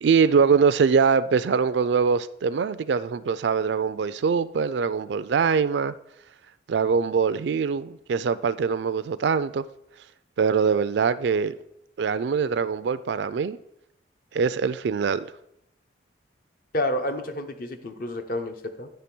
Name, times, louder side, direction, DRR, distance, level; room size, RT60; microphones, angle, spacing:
voice 1, 0.0-5.9 6.7-9.6 10.4-11.5 12.0-13.6 14.3-15.3, right 6 dB, 75° right, 0.4 m, -23 dB
voice 2, 16.7-18.9, left 1 dB, 55° left, 0.8 m, -29 dB
9.7 x 3.4 x 6.0 m
head